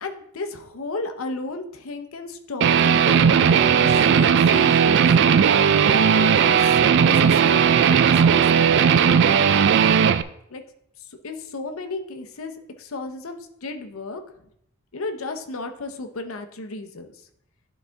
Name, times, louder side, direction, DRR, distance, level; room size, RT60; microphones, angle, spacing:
voice 1, 0.0-5.5 6.1-6.7 7.1-9.3 10.5-10.6 11.0-12.5 12.8-14.2 14.9-17.1, left 3 dB, 75° left, 6 dB, 0.7 m, -34 dB
Guitar, 2.6-10.2, right 7 dB, 55° right, 0.3 m, -17 dB
11.5 x 4.1 x 3.4 m, 0.74 s
head